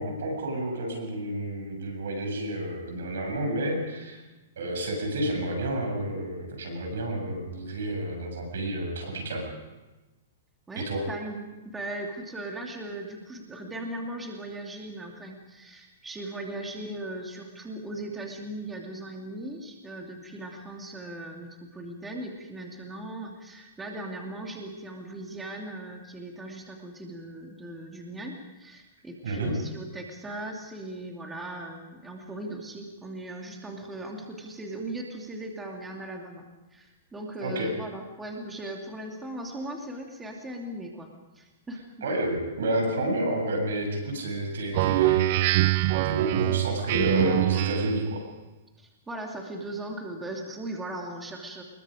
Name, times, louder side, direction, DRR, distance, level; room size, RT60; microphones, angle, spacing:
voice 1, 0.0-4.2 4.6-9.5 10.8-11.0 29.2-29.5 37.4-37.7 42.0-45.7 46.0-48.2, right 1 dB, 80° right, 3 dB, 7.4 m, -30 dB
voice 2, 10.7-41.1 41.3-41.8 48.8-51.6, right 1 dB, 10° right, 1 dB, 2.8 m, -38 dB
Speech synthesizer, 44.7-48.1, right 17 dB, 50° right, 0.7 m, -24 dB
25.5 x 21.5 x 5.2 m, 1.1 s
hypercardioid pair, 140°, 0 cm